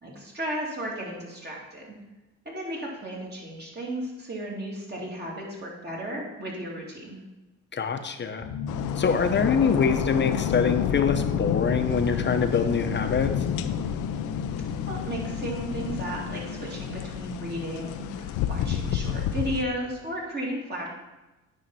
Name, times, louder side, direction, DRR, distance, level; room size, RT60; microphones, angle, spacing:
voice 1, 0.0-1.9 2.4-7.2 14.8-20.9, right 1 dB, 35° right, -3 dB, 3.0 m, -34 dB
voice 2, 7.7-8.5 9.0-13.3, left 5 dB, 35° left, 7 dB, 0.9 m, -24 dB
sound 1, 8.4-17.9, left 5 dB, 70° left, 1.1 m, -37 dB
sound 2, 8.7-19.6, left 9 dB, 85° left, 0.6 m, -30 dB
9.2 x 5.7 x 4.2 m, 1.1 s
cardioid pair, 90°, 30 cm